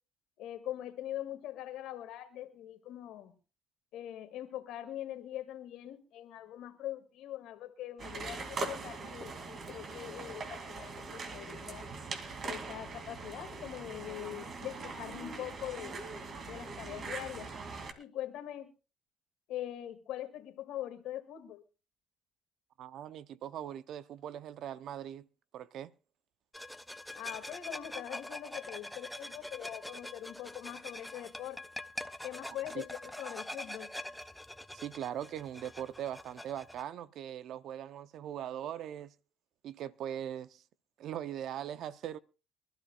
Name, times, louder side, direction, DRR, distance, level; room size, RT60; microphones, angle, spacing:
voice 1, 0.4-3.3 3.9-11.9 12.4-16.0 16.4-17.5 18.0-18.7 19.5-21.6 27.2-31.6 32.2-33.9, left 12 dB, 75° left, 2.0 m, -42 dB
sound 1, 8.0-17.9, right 3 dB, 50° right, 2.4 m, -42 dB
voice 2, 22.8-25.3 25.5-25.9 32.7-32.8 34.7-39.1 39.6-40.6 41.0-42.2, right 10 dB, 70° right, 0.7 m, -40 dB
sound 2, 26.5-36.8, left 1 dB, 5° left, 0.7 m, -44 dB
24.0 x 12.5 x 2.4 m
supercardioid pair, 75°, 0 cm